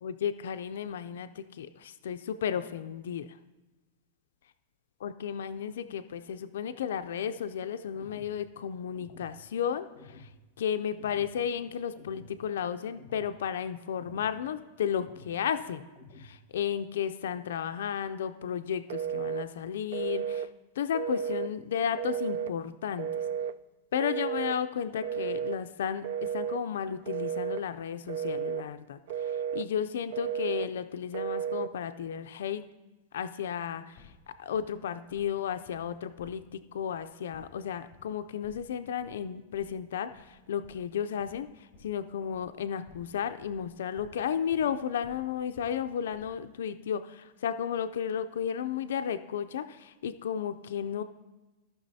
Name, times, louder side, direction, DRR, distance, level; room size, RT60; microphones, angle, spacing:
voice 1, 0.0-3.4 5.0-10.3 10.6-15.8 16.2-20.5 20.8-23.1 23.9-32.6 33.1-34.1 34.4-51.0, left 8 dB, 85° left, 10 dB, 0.4 m, -33 dB
sound 1, 7.9-8.4 8.9-9.4 9.9-10.4 10.9-11.3 11.9-12.4 12.9-13.3 14.0-14.4 14.9-15.4 15.9-16.4, left 2 dB, 50° left, 1.0 m, -51 dB
Telephone, 18.9-19.5 19.9-20.5 20.9-21.5 22.0-22.5 23.0-23.6 24.0-24.6 25.0-25.6 26.0-26.6 27.1-27.6 28.1-28.7 29.1-29.7 30.1-30.7 31.1-31.7, right 8 dB, 55° right, 0.3 m, -33 dB
sound 2, 33.9-34.2 34.5-34.8 35.1-35.4 35.6-36.5 36.8-37.1 37.3-37.6 37.9-38.2 38.4-38.7 39.0-39.3 39.5-39.8 40.1-40.3 40.6-42.1 42.3-43.1 43.4-44.2 44.5-44.7 45.0-45.8 46.1-46.5, left 4 dB, 25° left, 2.6 m, -57 dB
16.5 x 5.9 x 2.7 m, 1.1 s
supercardioid pair, 175°, 0 cm